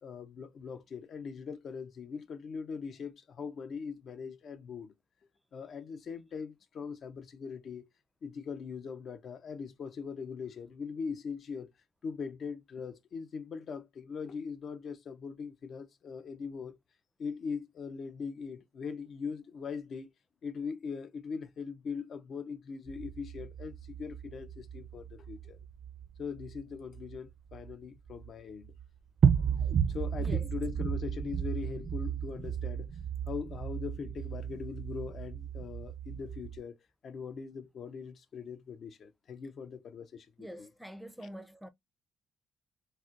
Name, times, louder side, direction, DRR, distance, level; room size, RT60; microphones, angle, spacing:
voice 1, 0.0-4.9 5.5-7.9 8.2-11.7 12.0-16.8 17.2-20.1 20.4-25.6 26.2-28.7 29.9-32.9 33.3-36.8 37.0-40.7, left 5 dB, 60° left, 0.5 m, -41 dB
sound 1, 22.9-28.3 28.6-28.8 29.2-36.6, right 7 dB, 60° right, 0.5 m, -33 dB
voice 2, 40.4-41.7, equal, ahead, 0.5 m, -46 dB
4.2 x 2.1 x 2.4 m
cardioid pair, 90°, 0 cm